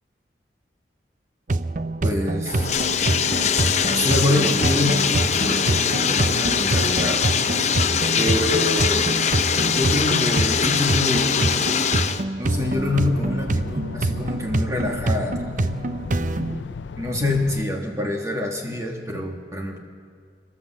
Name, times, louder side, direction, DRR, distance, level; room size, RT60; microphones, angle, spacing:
sound 1, 1.5-16.6, right 2 dB, 45° right, 0.6 m, -26 dB
voice 1, 2.0-2.7 3.9-5.1 5.3-7.3 8.2-9.1 9.6-11.4 12.4-15.7 17.0-19.8, left 1 dB, 15° right, 1 dB, 1.6 m, -26 dB
Bathtub (filling or washing), 2.5-12.2, left 6 dB, 40° left, 0.7 m, -22 dB
sound 2, 12.4-17.6, left 5 dB, 85° left, 0.4 m, -34 dB
28.5 x 12.5 x 7.7 m, 2.1 s
head